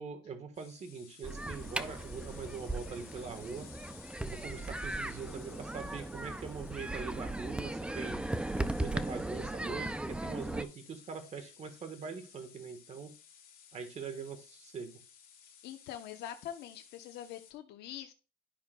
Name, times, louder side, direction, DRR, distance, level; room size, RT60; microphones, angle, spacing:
voice 1, 0.0-3.7 4.2-8.2 8.8-13.1 13.7-15.0, right 5 dB, 40° right, 7 dB, 1.4 m, -43 dB
sound 1, 0.5-17.5, left 8 dB, 60° left, 1.9 m, -56 dB
sound 2, 1.2-10.6, right 1 dB, 5° right, 0.4 m, -37 dB
voice 2, 15.6-18.1, left 11 dB, 85° left, 7 dB, 0.9 m, -44 dB
11.5 x 5.8 x 2.3 m, 0.32 s
cardioid pair, 110°, 17 cm